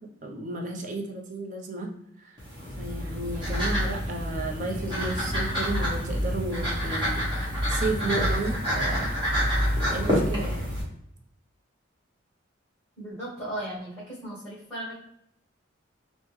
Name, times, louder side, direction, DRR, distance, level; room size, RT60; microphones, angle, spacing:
voice 1, 0.2-2.3 2.8-9.1 9.9-10.7, right 2 dB, 40° right, 2 dB, 0.5 m, -33 dB
sound 1, 2.4-10.8, equal, 25° right, 1.0 m, -27 dB
voice 2, 13.0-15.0, right 1 dB, 10° left, -10 dB, 1.4 m, -36 dB
3.4 x 2.1 x 3.0 m, 0.75 s
head